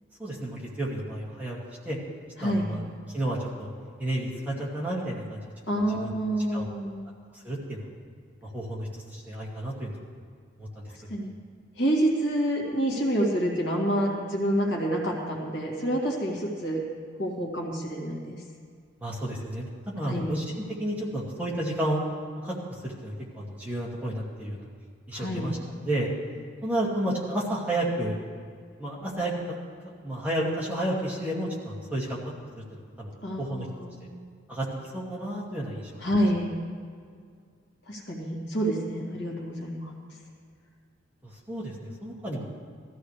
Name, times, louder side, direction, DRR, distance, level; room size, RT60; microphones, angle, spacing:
voice 1, 0.2-1.6 1.8-2.0 2.4-2.8 3.1-3.7 4.0-5.4 5.9-6.1 6.5-6.7 7.3-7.8 8.4-10.0 10.6-11.1 19.0-20.4 20.8-22.0 22.4-22.6 22.8-24.7 25.1-25.6 25.8-26.1 26.6-28.2 28.8-29.3 29.8-32.2 32.7-33.1 33.4-33.7 34.5-34.7 34.9-35.9 41.2-42.4, right 1 dB, 10° right, -6 dB, 2.2 m, -31 dB
voice 2, 2.4-2.7 5.7-7.1 10.9-11.3 11.8-16.8 17.2-18.4 20.1-20.3 25.1-25.5 33.2-34.2 36.0-36.6 37.8-39.9, right 1 dB, 60° left, -2 dB, 2.3 m, -28 dB
18.0 x 14.0 x 3.3 m, 2.1 s
head